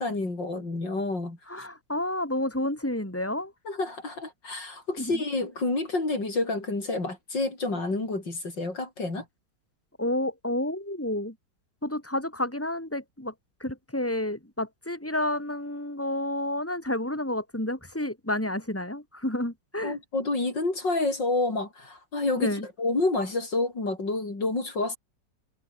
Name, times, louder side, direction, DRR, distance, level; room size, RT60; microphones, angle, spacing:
voice 1, 0.0-1.4 3.6-9.2 19.8-25.0, left 2 dB, 75° left, 6.6 m, -29 dB
voice 2, 1.5-3.5 5.0-5.2 10.0-11.3 11.8-13.3 13.6-20.0 22.4-22.6, left 1 dB, 5° left, 5.6 m, -30 dB
omnidirectional pair, 2.0 m